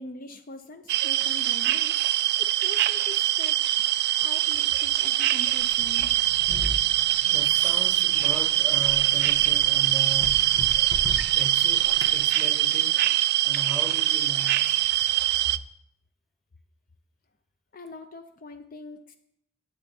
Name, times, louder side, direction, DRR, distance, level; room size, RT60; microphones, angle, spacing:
voice 1, 0.0-2.0 2.4-3.6 4.2-6.1 17.7-19.1, left 2 dB, 45° left, 8 dB, 0.5 m, -42 dB
sound 1, 0.9-15.6, right 14 dB, 55° right, 0.3 m, -23 dB
sound 2, 5.6-12.2, equal, 85° left, 1.3 m, -38 dB
voice 2, 7.2-10.6 11.4-13.1 13.4-14.8, equal, ahead, 4 dB, 1.0 m, -38 dB
10.5 x 7.8 x 4.3 m, 0.76 s
head